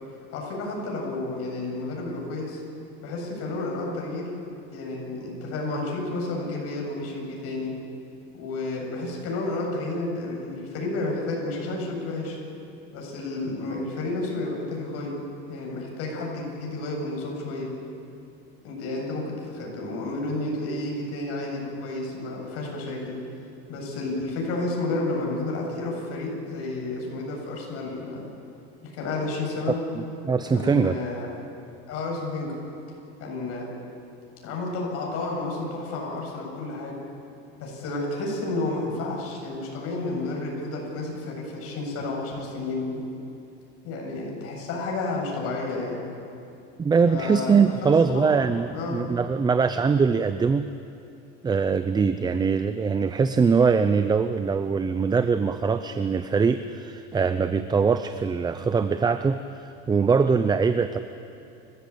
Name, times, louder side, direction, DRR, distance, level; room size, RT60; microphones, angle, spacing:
voice 1, 0.3-2.6 3.0-4.3 4.7-7.7 8.3-12.4 12.9-15.2 15.5-17.8 18.6-23.2 23.7-28.3 28.8-29.8 30.5-31.3 31.9-32.6 33.2-33.7 34.4-37.0 37.6-43.0 43.8-46.0 47.1-47.5 47.8-48.4 48.7-49.0, left 2 dB, 55° left, -1 dB, 7.6 m, -31 dB
voice 2, 30.0-31.0 46.8-50.6 51.4-61.0, right 5 dB, 15° right, 10 dB, 0.5 m, -22 dB
30.0 x 15.0 x 8.6 m, 2.8 s
cardioid pair, 135°, 29 cm